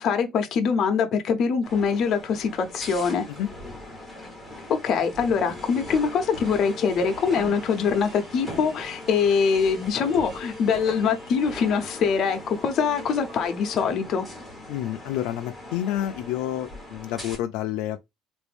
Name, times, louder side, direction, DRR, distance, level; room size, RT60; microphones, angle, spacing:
voice 1, 0.0-3.2 4.7-14.2, left 6 dB, 40° left, 0.7 m, -23 dB
sound 1, 1.6-17.4, left 1 dB, 10° right, 1.1 m, -40 dB
voice 2, 14.7-18.0, left 12 dB, 80° left, 0.3 m, -29 dB
3.3 x 2.6 x 3.4 m
cardioid pair, 175°, 0 cm